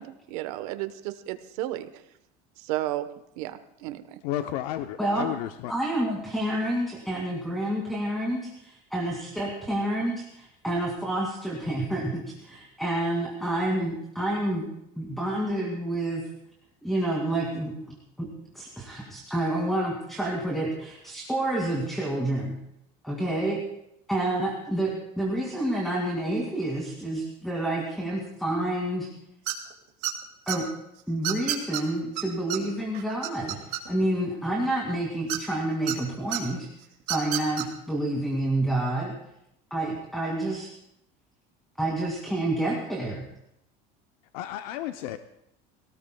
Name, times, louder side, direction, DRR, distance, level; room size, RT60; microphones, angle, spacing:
voice 1, 0.0-2.0 2.6-3.1 3.4-4.2, right 15 dB, 80° right, 10 dB, 1.1 m, -33 dB
voice 2, 4.2-5.8 44.3-45.2, left 12 dB, 80° left, 8 dB, 0.7 m, -32 dB
voice 3, 5.7-14.6 15.0-16.2 16.8-18.3 18.5-22.5 23.0-23.6 24.1-29.1 30.5-30.7 31.1-33.6 33.9-36.7 37.1-39.1 39.7-40.7 41.8-43.2, right 1 dB, ahead, -2 dB, 2.4 m, -29 dB
sound 1, 29.5-29.7 30.0-30.6 31.2-31.8 32.2-32.3 32.5-32.6 32.9-34.1 35.3-35.9 36.3-36.4 37.0-37.6, right 14 dB, 65° right, 2.4 m, -29 dB
24.5 x 18.0 x 2.3 m, 0.79 s
cardioid pair, 160°, 19 cm